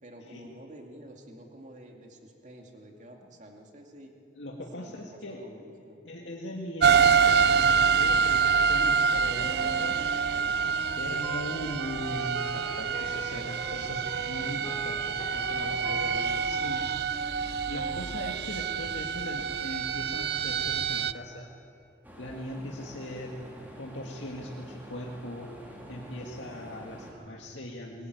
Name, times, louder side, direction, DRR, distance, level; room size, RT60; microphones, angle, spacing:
voice 1, 0.0-4.1 4.8-6.0 7.9-8.5 13.8-14.1 15.9-16.7 26.9-27.5, right 1 dB, 40° right, 2 dB, 2.6 m, -50 dB
voice 2, 4.3-5.4 6.0-7.1 7.4-10.0 11.0-16.9 17.7-21.5 22.2-23.4 23.8-25.5 25.9-28.1, left 1 dB, 75° left, -1 dB, 2.1 m, -39 dB
sound 1, 6.8-21.1, right 6 dB, 55° right, 0.5 m, -26 dB
Wind instrument woodwind instrument, 9.4-18.4, left 1 dB, 20° left, 1.5 m, -43 dB
sound 2, 22.0-27.1, equal, 10° right, 3.6 m, -47 dB
22.0 x 20.0 x 9.5 m, 2.6 s
head